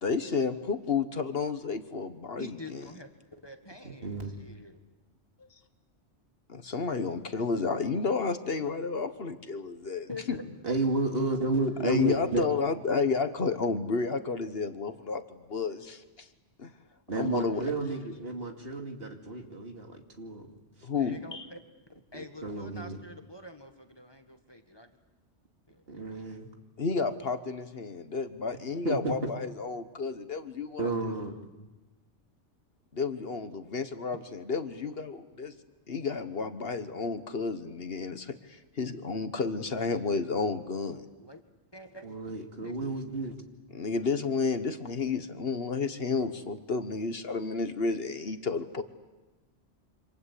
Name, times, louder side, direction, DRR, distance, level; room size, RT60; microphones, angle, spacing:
voice 1, 0.0-2.8 6.5-10.1 11.8-16.3 16.6-16.7 17.1-17.6 20.8-21.5 26.8-31.1 32.9-35.5 35.9-41.0 43.7-48.8, left 4 dB, 55° left, 10 dB, 1.4 m, -31 dB
voice 2, 2.4-4.8 10.1-10.5 21.0-21.6 22.1-24.9 25.7-25.8 41.1-41.4 41.7-42.3 42.6-42.9, left 2 dB, 20° left, 6 dB, 1.7 m, -46 dB
voice 3, 10.6-12.4 17.1-20.5 20.8-20.9 22.1-23.0 25.9-26.5 28.8-29.1 30.8-31.3 42.0-43.4, right 2 dB, 55° right, 3 dB, 2.8 m, -32 dB
27.5 x 26.0 x 8.4 m, 1.1 s
omnidirectional pair, 1.2 m